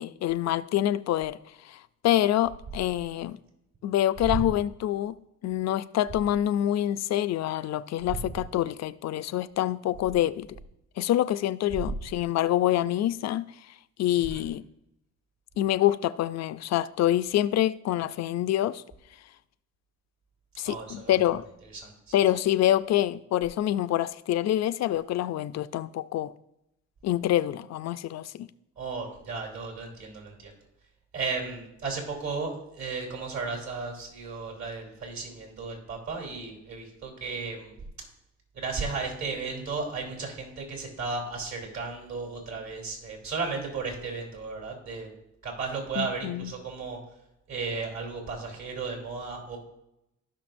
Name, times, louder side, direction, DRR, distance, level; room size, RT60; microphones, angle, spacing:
voice 1, 0.0-1.4 1.6-3.4 3.8-5.2 5.4-10.6 11.0-13.5 14.0-14.6 15.6-18.8 20.6-21.4 22.1-26.3 27.0-28.5 46.0-46.5, left 12 dB, 60° left, 0.5 m, -26 dB
voice 2, 20.6-21.1 21.8-22.1 28.8-30.5 31.1-37.7 38.5-45.1 45.4-47.0 47.5-49.6, right 4 dB, 65° right, 3.1 m, -34 dB
15.0 x 5.9 x 2.6 m
cardioid pair, 90°, 30 cm